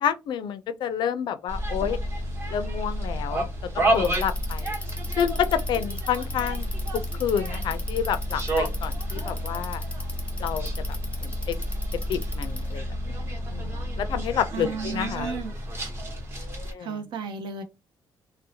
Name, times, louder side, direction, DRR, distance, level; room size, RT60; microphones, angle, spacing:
voice 1, 0.0-2.0 2.5-3.5 3.9-4.7 5.2-6.7 7.2-9.8 10.4-10.7 11.2-11.6 12.1-13.2 13.5-15.3 16.4-17.0, left 8 dB, 70° left, 0.4 m, -29 dB
sound 1, 1.5-16.7, equal, 30° right, 1.0 m, -30 dB
Bicycle, 3.9-12.8, left 2 dB, 15° left, 0.6 m, -39 dB
voice 2, 14.5-15.5 16.8-17.6, right 5 dB, 75° right, 0.6 m, -33 dB
2.7 x 2.0 x 2.7 m
cardioid pair, 105°, 8 cm